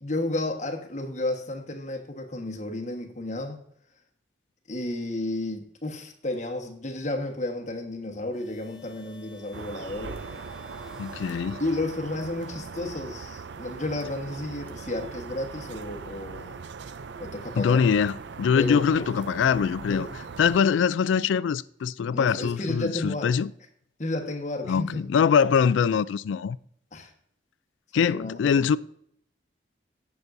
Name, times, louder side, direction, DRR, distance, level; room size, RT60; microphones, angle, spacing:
voice 1, 0.0-3.6 4.7-10.2 11.6-16.6 17.2-17.8 18.5-18.8 19.9-20.1 22.1-23.3 24.0-25.1 26.9-27.1 27.9-28.7, left 2 dB, 40° left, 1.3 m, -32 dB
sound 1, 8.3-12.2, left 4 dB, 5° right, 1.0 m, -51 dB
sound 2, 9.5-20.6, right 5 dB, 75° right, 0.4 m, -40 dB
voice 2, 11.0-11.6 17.5-18.1 18.4-20.1 20.4-23.5 24.7-26.6 27.9-28.8, left 6 dB, 85° left, 0.3 m, -23 dB
16.5 x 6.0 x 2.6 m
head